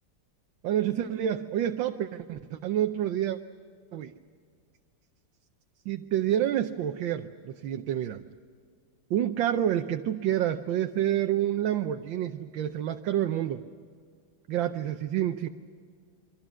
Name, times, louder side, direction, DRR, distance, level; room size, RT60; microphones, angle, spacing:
voice 1, 0.6-3.4 3.9-4.1 5.8-8.2 9.1-13.6 14.5-15.5, right 11 dB, 90° right, 6 dB, 1.5 m, -28 dB
28.5 x 24.0 x 6.2 m, 2.1 s
omnidirectional pair, 2.0 m